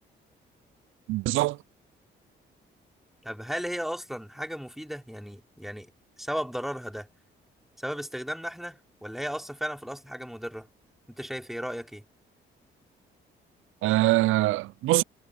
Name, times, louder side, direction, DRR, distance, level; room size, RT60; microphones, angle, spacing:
voice 1, 1.1-1.6 13.8-15.0, right 18 dB, 85° right, 0.4 m, -23 dB
voice 2, 3.2-5.9 6.2-7.1 7.8-10.7 11.1-12.0, equal, ahead, 3.4 m, -35 dB
cardioid pair, 90°, 20 cm